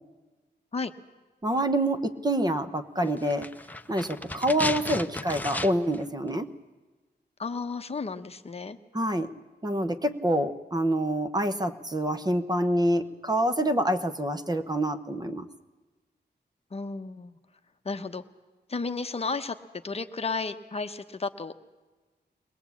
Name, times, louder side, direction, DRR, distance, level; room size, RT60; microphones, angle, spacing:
voice 1, 1.4-3.5 3.9-6.5 8.9-9.3 9.6-15.5, right 1 dB, 20° right, 9 dB, 0.9 m, -26 dB
sound 1, 3.2-6.0 6.3-6.4, left 2 dB, 10° left, 0.8 m, -34 dB
voice 2, 7.4-8.8 16.7-17.4 17.8-18.2 18.7-19.6 19.8-21.6, left 4 dB, 35° left, 8 dB, 0.9 m, -33 dB
22.5 x 20.0 x 8.4 m, 1.2 s
wide cardioid pair, 160°, 18 cm